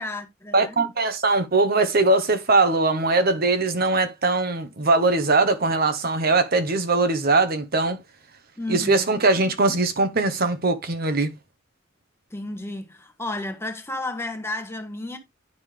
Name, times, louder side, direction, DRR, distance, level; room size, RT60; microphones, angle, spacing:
voice 1, 0.0-0.9 8.6-9.2 12.3-15.2, left 2 dB, 10° left, 1.2 m, -32 dB
voice 2, 0.5-8.0 8.7-11.3, right 3 dB, 50° right, 1.0 m, -21 dB
9.6 x 5.3 x 3.3 m
head